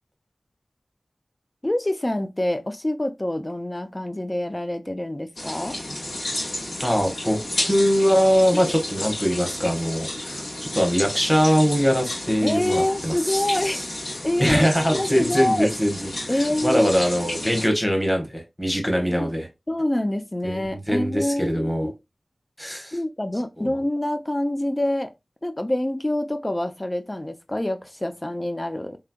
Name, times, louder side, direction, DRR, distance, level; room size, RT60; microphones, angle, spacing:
voice 1, 1.6-5.8 8.6-8.7 12.4-13.8 14.2-15.7 16.3-16.9 19.1-19.3 19.7-21.9 22.9-25.1 25.4-29.0, left 1 dB, 25° left, 0.5 m, -26 dB
sound 1, 5.4-17.7, left 1 dB, 90° left, 1.9 m, -32 dB
voice 2, 6.8-13.8 14.4-16.0 16.6-19.5 20.4-21.9 22.6-22.9 23.6-23.7, equal, 5° left, 1.3 m, -22 dB
3.4 x 3.2 x 2.3 m
wide cardioid pair, 60°, 0 cm